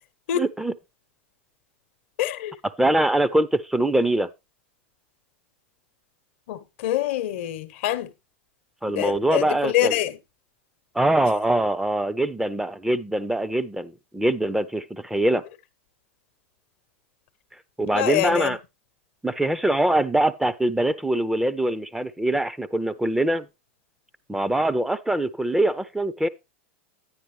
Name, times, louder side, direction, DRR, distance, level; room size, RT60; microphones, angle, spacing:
voice 1, 0.3-0.7 2.8-4.3 8.8-10.0 10.9-15.4 17.8-18.6 19.2-23.5 24.3-26.3, right 1 dB, 5° right, 0.6 m, -23 dB
voice 2, 2.2-2.5 6.5-8.1 8.9-10.2 17.8-18.6, left 12 dB, 65° left, 0.9 m, -25 dB
10.0 x 9.5 x 3.2 m
hypercardioid pair, 95°, 7 cm